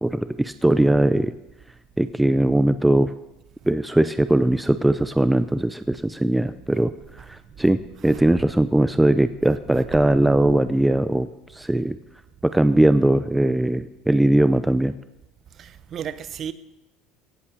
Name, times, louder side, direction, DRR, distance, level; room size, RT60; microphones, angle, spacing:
voice 1, 0.0-1.3 2.0-3.1 3.7-6.9 7.3-12.0 12.4-14.9, right 1 dB, 5° right, 0.5 m, -20 dB
voice 2, 7.6-8.2 9.7-9.8 15.6-16.5, right 8 dB, 40° right, 0.9 m, -36 dB
16.5 x 8.5 x 7.0 m
supercardioid pair, 115°, 0 cm